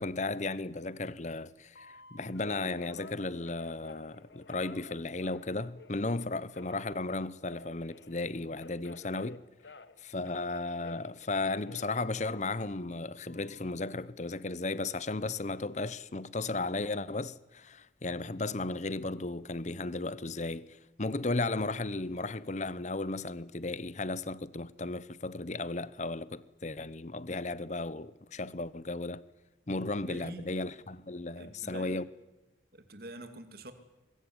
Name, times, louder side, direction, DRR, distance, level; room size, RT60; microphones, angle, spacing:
voice 1, 0.0-9.4 10.0-29.2 29.7-32.1, left 2 dB, 40° left, 0.9 m, -35 dB
Telephone, 1.7-6.1 6.5-10.0 10.2-12.8 13.3-13.8, left 3 dB, 65° left, 1.4 m, -52 dB
voice 2, 29.9-30.5 31.3-32.0 32.7-33.7, right 1 dB, 50° right, 2.7 m, -46 dB
24.5 x 21.5 x 9.7 m
head